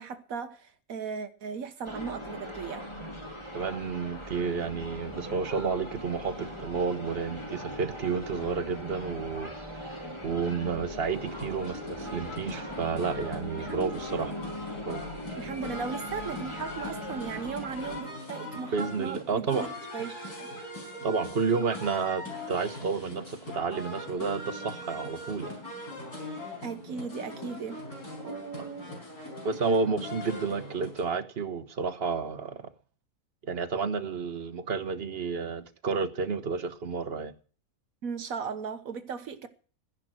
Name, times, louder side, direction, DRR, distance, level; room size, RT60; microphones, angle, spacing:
voice 1, 0.0-2.9 13.6-14.3 15.4-19.5 19.9-20.5 26.6-27.8 28.2-28.9 38.0-39.5, right 6 dB, 70° right, 1.4 m, -37 dB
sound 1, 1.8-18.0, equal, 20° left, 3.1 m, -40 dB
voice 2, 3.5-10.0 10.2-14.3 14.8-15.0 18.5-19.7 21.0-25.6 28.6-28.7 29.4-32.6 33.4-37.3, right 5 dB, 45° right, 1.2 m, -31 dB
sound 2, 11.1-31.0, left 1 dB, 90° left, 5.5 m, -41 dB
13.5 x 10.5 x 6.2 m
omnidirectional pair, 1.6 m